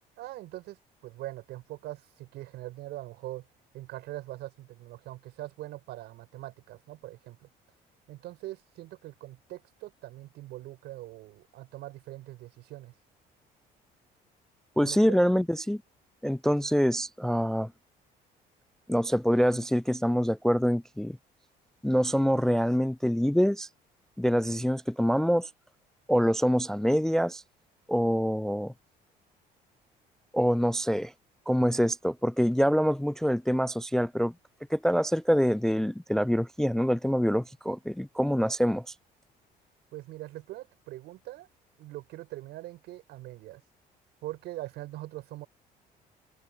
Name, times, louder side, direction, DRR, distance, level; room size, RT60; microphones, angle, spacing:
voice 1, 0.2-3.5 3.7-7.5 8.1-12.9 14.8-15.2 39.9-41.5 41.8-43.6 44.2-45.5, right 16 dB, 85° right, 6.6 m, -42 dB
voice 2, 14.8-15.8 16.2-17.7 18.9-21.2 21.8-23.7 24.2-25.5 26.1-27.4 27.9-28.7 30.3-31.1 31.5-34.3 34.7-38.9, equal, 5° left, 0.3 m, -25 dB
open air
cardioid pair, 110°, 17 cm